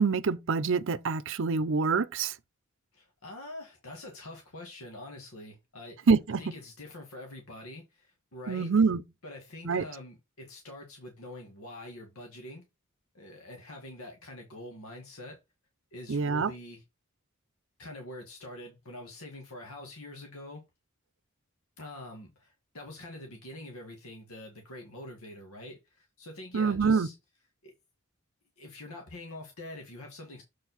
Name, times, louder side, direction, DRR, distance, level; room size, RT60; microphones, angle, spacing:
voice 1, 0.0-2.3 6.1-6.4 8.5-9.0 9.6-9.8 16.1-16.5 26.5-27.1, right 5 dB, 60° right, 0.6 m, -25 dB
voice 2, 2.9-6.1 6.4-8.7 9.2-12.6 13.1-15.4 15.9-16.8 17.8-20.6 21.8-27.1 27.6-27.7 28.6-30.4, left 1 dB, 85° left, 1.6 m, -45 dB
7.4 x 4.6 x 4.0 m
head